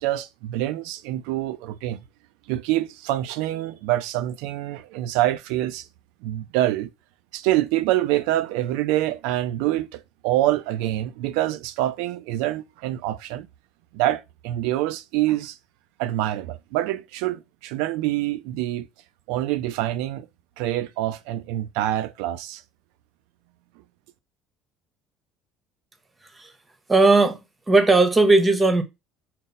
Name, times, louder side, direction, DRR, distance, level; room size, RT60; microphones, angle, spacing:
voice 1, 0.0-2.0 2.5-5.9 6.2-6.9 7.3-13.5 13.9-15.6 16.0-18.9 19.3-20.3 20.6-22.6, right 14 dB, 90° right, 0.3 m, -26 dB
voice 2, 26.9-27.4 27.7-28.8, right 3 dB, 15° right, 0.7 m, -17 dB
3.9 x 2.0 x 4.0 m
cardioid pair, 145°, 0 cm